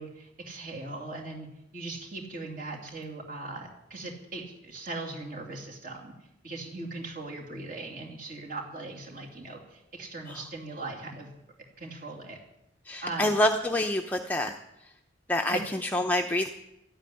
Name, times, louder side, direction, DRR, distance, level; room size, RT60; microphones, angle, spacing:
voice 1, 0.0-1.5 1.7-6.1 6.4-11.3 11.8-12.4 13.0-13.4 15.4-15.6, right 2 dB, 45° right, 0 dB, 2.9 m, -39 dB
voice 2, 12.9-14.6 15.3-16.5, left 1 dB, 10° left, 3 dB, 0.6 m, -27 dB
12.5 x 8.9 x 9.9 m, 0.87 s
head